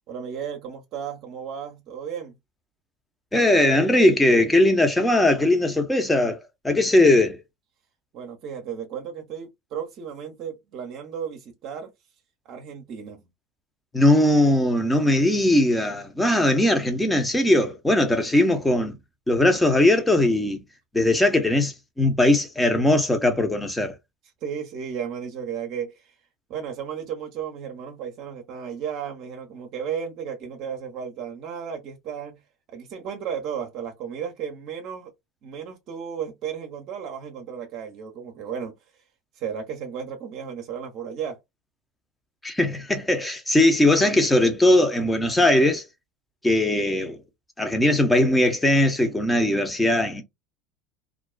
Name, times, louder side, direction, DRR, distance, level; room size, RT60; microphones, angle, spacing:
voice 1, 0.1-2.3 8.1-11.9 12.4-13.2 24.4-26.1 26.5-32.4 32.7-35.1 35.4-38.7 39.4-41.4, right 7 dB, 55° right, 0.7 m, -34 dB
voice 2, 3.3-7.4 13.9-19.0 19.3-20.6 20.9-23.9 42.4-45.8 46.4-47.2 47.6-50.2, left 1 dB, 10° left, 0.8 m, -20 dB
2.4 x 2.2 x 2.2 m
hypercardioid pair, 85°, 0 cm